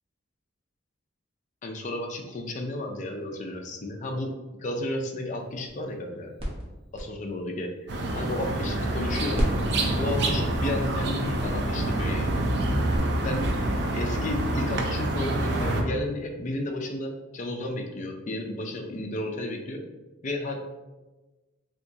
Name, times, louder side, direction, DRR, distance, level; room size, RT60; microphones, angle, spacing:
voice 1, 1.6-4.3 4.6-6.3 6.9-7.7 8.2-9.4 10.0-12.4 13.2-13.4 13.9-19.8 20.2-20.6, left 1 dB, 40° left, 2 dB, 0.4 m, -32 dB
sound 1, 5.4-9.0 9.3-13.0, equal, 30° right, 0.8 m, -36 dB
sound 2, 7.9-15.8, right 1 dB, 60° right, 0.5 m, -27 dB
3.4 x 2.9 x 2.7 m, 1.2 s
head